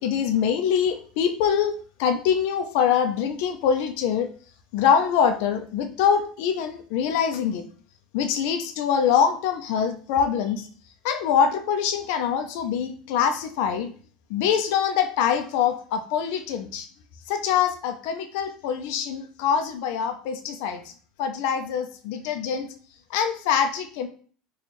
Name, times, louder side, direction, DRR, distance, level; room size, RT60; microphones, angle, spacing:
voice 1, 0.0-1.7 2.0-4.3 4.7-7.6 8.1-10.7 11.0-13.9 14.3-16.9 17.3-20.9 21.2-22.7 23.1-24.1, left 7 dB, 75° left, 8 dB, 0.5 m, -24 dB
3.0 x 2.3 x 4.2 m, 0.43 s
supercardioid pair, 115°, 0 cm